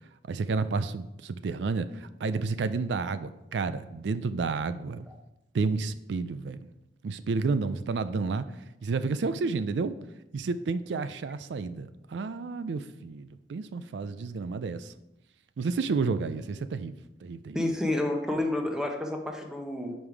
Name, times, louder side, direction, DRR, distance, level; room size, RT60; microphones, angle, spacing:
voice 1, 0.3-5.1 5.5-6.7 7.0-8.4 8.8-9.9 10.3-14.9 15.6-16.9 17.2-17.6, right 4 dB, 75° right, 13 dB, 0.4 m, -30 dB
voice 2, 17.5-19.9, left 1 dB, 5° right, 2 dB, 0.8 m, -29 dB
5.5 x 5.1 x 4.7 m, 0.90 s
head